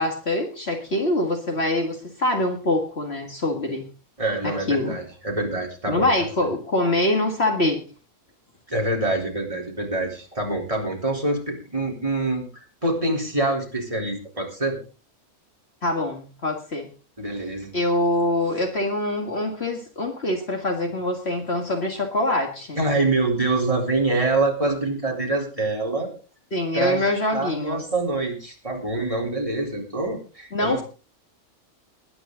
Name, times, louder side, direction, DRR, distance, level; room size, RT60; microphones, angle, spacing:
voice 1, 0.0-3.8 4.4-5.0 5.9-7.8 15.8-16.9 17.7-22.8 26.5-27.8 30.5-30.8, left 1 dB, 45° left, 3 dB, 2.2 m, -24 dB
voice 2, 4.2-6.1 8.7-12.4 12.8-14.8 17.2-17.7 22.8-26.1 26.7-30.8, right 2 dB, 20° right, 1 dB, 4.2 m, -25 dB
21.0 x 9.6 x 3.9 m, 0.35 s
omnidirectional pair, 1.5 m